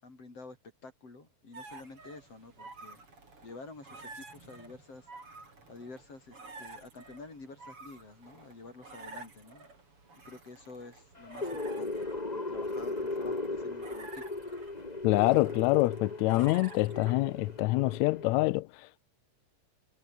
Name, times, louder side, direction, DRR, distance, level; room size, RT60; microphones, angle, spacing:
voice 1, 0.0-0.6 0.8-3.0 3.4-5.1 5.7-9.7 10.3-14.2, left 3 dB, 45° left, 8.0 m, -49 dB
sound 1, 1.5-17.6, right 3 dB, 40° right, 7.2 m, -51 dB
sound 2, 11.2-18.4, left 2 dB, 15° left, 1.8 m, -37 dB
voice 2, 15.0-18.7, left 21 dB, 85° left, 1.6 m, -26 dB
omnidirectional pair, 3.7 m